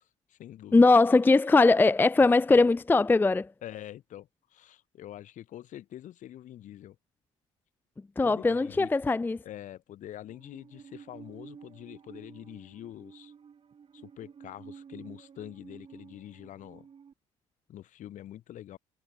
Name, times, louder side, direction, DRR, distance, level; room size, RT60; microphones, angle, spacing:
voice 1, 0.0-0.9 2.2-2.6 3.6-7.0 8.2-8.9 9.4-13.3 13.9-16.9 17.7-18.8, left 12 dB, 55° left, 1.8 m, -45 dB
voice 2, 0.7-3.5 8.2-9.4, left 3 dB, 15° left, 0.5 m, -21 dB
Musical instrument, 10.3-17.1, right 7 dB, 35° right, 1.6 m, -51 dB
hypercardioid pair, 60°, 16 cm